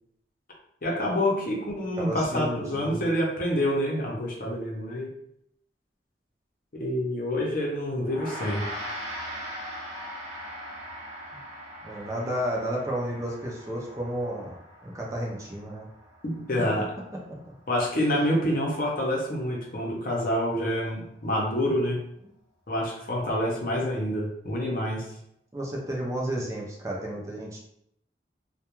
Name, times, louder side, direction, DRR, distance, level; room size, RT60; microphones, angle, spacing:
voice 1, 0.8-5.1 6.7-8.7 16.2-16.8 17.7-22.0 22.7-25.0, left 1 dB, 50° left, -2 dB, 0.7 m, -27 dB
voice 2, 2.0-3.0 11.8-14.6 14.8-15.9 25.5-27.6, right 1 dB, 20° right, -3 dB, 0.4 m, -32 dB
Gong, 8.0-17.7, equal, 40° right, 0.8 m, -40 dB
2.3 x 2.2 x 2.9 m, 0.75 s
head